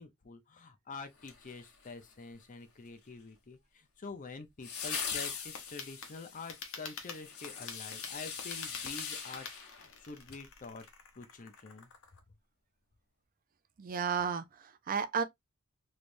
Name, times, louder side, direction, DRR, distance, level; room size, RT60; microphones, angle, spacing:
voice 1, 0.0-10.8 11.1-11.9, left 4 dB, 35° left, 0.6 m, -47 dB
sound 1, 1.2-2.1 4.6-10.5 10.8-10.9, left 6 dB, 85° left, 1.4 m, -41 dB
sound 2, 5.5-12.2, left 5 dB, 65° left, 0.9 m, -48 dB
voice 2, 13.8-15.2, right 6 dB, 40° right, 0.4 m, -33 dB
3.3 x 3.2 x 2.5 m
head